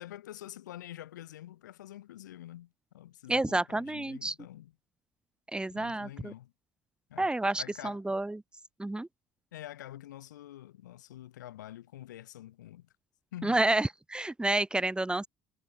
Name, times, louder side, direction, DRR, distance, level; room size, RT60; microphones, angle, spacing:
voice 1, 0.0-4.7 5.7-6.5 7.1-7.3 7.6-8.0 9.5-12.9 13.3-13.6, left 13 dB, 75° left, 5.7 m, -47 dB
voice 2, 3.3-4.3 5.5-6.3 7.2-8.4 8.8-9.1 13.4-15.3, right 2 dB, 10° right, 1.4 m, -29 dB
figure-of-eight pair, 55°, 10 cm